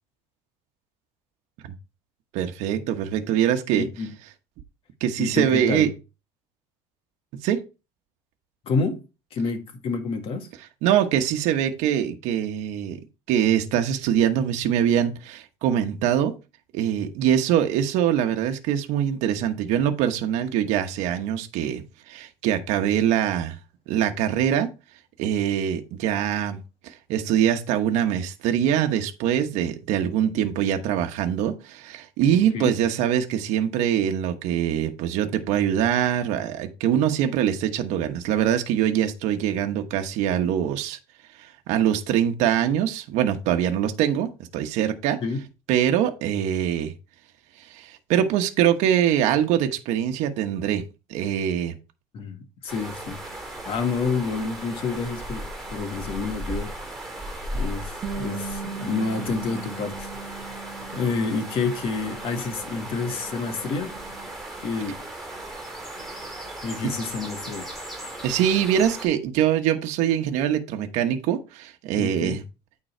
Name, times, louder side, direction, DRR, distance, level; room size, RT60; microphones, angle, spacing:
voice 1, 2.3-3.9 5.0-5.9 7.4-7.6 10.8-13.0 13.3-16.3 16.7-23.6 23.9-24.7 25.2-26.6 26.8-41.0 41.4-45.2 45.7-46.9 47.6-50.8 51.1-51.7 68.2-72.4, right 10 dB, 70° right, 1.1 m, -23 dB
voice 2, 3.7-4.1 5.2-5.9 8.6-9.0 9.3-10.5 32.3-32.7 45.2-45.4 52.1-53.2 53.7-56.7 57.5-60.1 60.9-64.0 64.6-65.0 66.6-67.7 72.0-72.4, left 4 dB, 50° left, 1.8 m, -28 dB
sound 1, 52.7-69.1, right 1 dB, ahead, 3.6 m, -36 dB
Bass guitar, 58.0-64.3, right 5 dB, 30° right, 1.1 m, -39 dB
9.0 x 3.9 x 4.4 m
cardioid pair, 125°, 12 cm